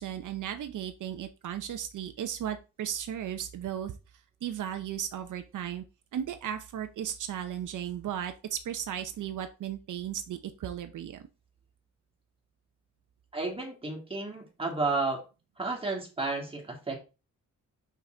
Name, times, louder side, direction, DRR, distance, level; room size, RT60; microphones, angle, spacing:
voice 1, 0.0-4.0 4.4-5.8 6.1-11.3, right 10 dB, 80° right, 8 dB, 0.8 m, -35 dB
voice 2, 13.3-15.2 15.6-17.0, right 3 dB, 20° right, 0 dB, 2.3 m, -32 dB
5.9 x 5.8 x 3.8 m, 0.30 s
wide cardioid pair, 130°, 30 cm